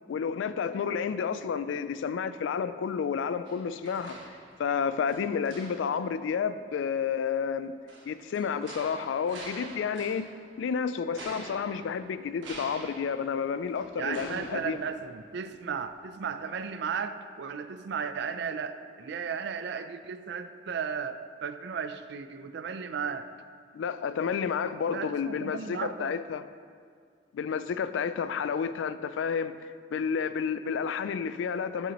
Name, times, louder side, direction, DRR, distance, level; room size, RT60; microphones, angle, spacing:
voice 1, 0.1-4.2 4.6-7.7 8.1-10.3 10.6-14.8 23.7-26.4 27.3-31.9, left 6 dB, 90° left, 13 dB, 0.3 m, -30 dB
sound 1, 3.5-4.8 5.1-6.1 7.9-10.5 11.1-15.5 15.9-16.0, right 2 dB, 90° right, 1.2 m, -46 dB
voice 2, 14.0-23.3 24.9-26.2, right 6 dB, 65° right, 11 dB, 0.4 m, -35 dB
11.0 x 5.6 x 2.9 m, 2.1 s
head